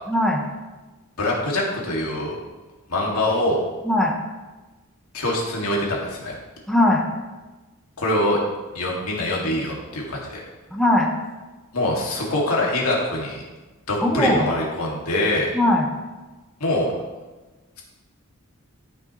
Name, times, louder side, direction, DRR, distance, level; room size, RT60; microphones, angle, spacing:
voice 1, 0.1-0.4 3.8-4.1 6.7-7.0 10.7-11.1 14.0-14.5 15.5-15.9, left 1 dB, ahead, 0 dB, 0.9 m, -19 dB
voice 2, 1.2-2.4 2.9-3.6 5.1-6.4 8.0-8.4 8.7-10.4 11.7-13.4 13.9-15.5 16.6-16.9, left 1 dB, 85° left, -3 dB, 2.2 m, -24 dB
13.5 x 6.3 x 3.1 m, 1.2 s
head